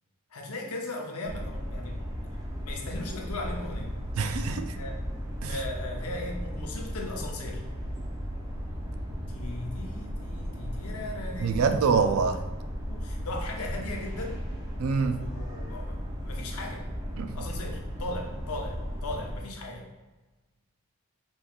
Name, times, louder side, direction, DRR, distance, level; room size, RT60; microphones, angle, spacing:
voice 1, 0.3-3.9 4.7-5.0 5.5-7.6 9.3-11.8 12.9-14.4 15.2-16.9 17.3-19.9, left 2 dB, 90° left, 1 dB, 0.8 m, -38 dB
sound 1, 1.2-19.4, equal, 15° right, 0.6 m, -35 dB
voice 2, 4.2-4.8 5.4-5.5 11.4-12.4 14.8-15.2 17.2-17.4, right 5 dB, 75° right, 8 dB, 0.4 m, -25 dB
5.3 x 3.1 x 2.4 m, 1.2 s
head